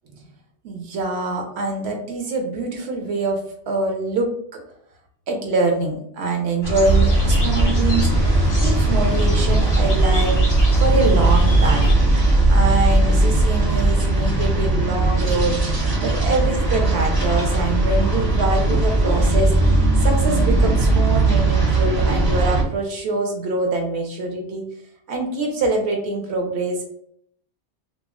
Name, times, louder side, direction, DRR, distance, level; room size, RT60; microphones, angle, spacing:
voice 1, 0.6-4.6 5.3-8.1 8.6-10.4 10.8-11.9 12.5-15.6 16.0-24.6 25.1-26.9, right 2 dB, 70° right, 2 dB, 0.8 m, -24 dB
sound 1, 6.6-11.9, right 1 dB, 25° left, 0.4 m, -23 dB
sound 2, 6.8-22.6, right 2 dB, 25° right, 0.5 m, -18 dB
2.3 x 2.0 x 3.5 m, 0.68 s
omnidirectional pair, 1.2 m